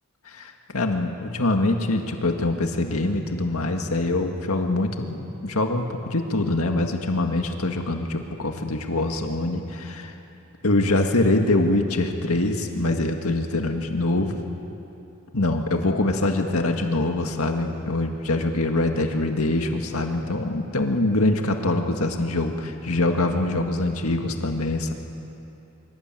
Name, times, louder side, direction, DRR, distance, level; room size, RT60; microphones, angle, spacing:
voice 1, 0.3-10.1 10.6-14.4 15.3-24.9, left 2 dB, 85° left, 3 dB, 1.9 m, -24 dB
25.0 x 24.0 x 9.1 m, 2.8 s
head